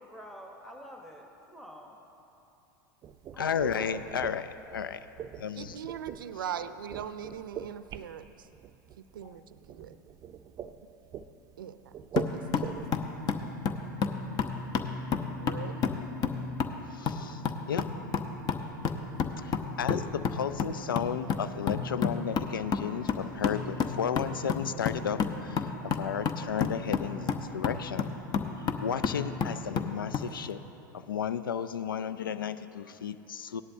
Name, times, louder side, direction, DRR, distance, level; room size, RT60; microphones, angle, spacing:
voice 1, 0.0-1.9 3.3-4.0, equal, ahead, 1 dB, 1.1 m, -47 dB
sound 1, 3.0-13.5, right 9 dB, 35° right, 0.5 m, -42 dB
voice 2, 3.4-5.1 5.4-5.8 16.9-17.4 17.7-17.9 19.2-28.1 28.6-30.6 30.9-33.6, left 8 dB, 90° left, 13 dB, 0.4 m, -34 dB
voice 3, 5.6-8.5 9.1-10.0 11.6-12.8 15.4-15.8, right 8 dB, 80° right, 13 dB, 0.5 m, -41 dB
sound 2, 12.2-30.3, left 6 dB, 35° left, 0.8 m, -32 dB
17.5 x 11.0 x 2.7 m, 2.9 s
hypercardioid pair, 95°, 11 cm